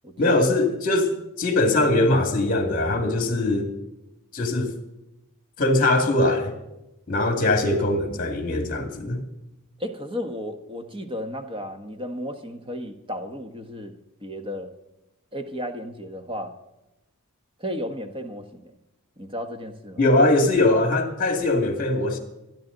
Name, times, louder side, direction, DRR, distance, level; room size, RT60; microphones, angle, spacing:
voice 1, 0.2-1.1 1.4-3.7 4.3-4.7 5.6-6.5 7.1-9.2 20.0-22.2, left 2 dB, 40° left, 2.4 m, -21 dB
voice 2, 9.8-13.9 14.2-14.7 15.3-16.6 17.6-18.7 19.2-20.0, equal, 25° right, 1.3 m, -34 dB
24.0 x 10.5 x 4.0 m
head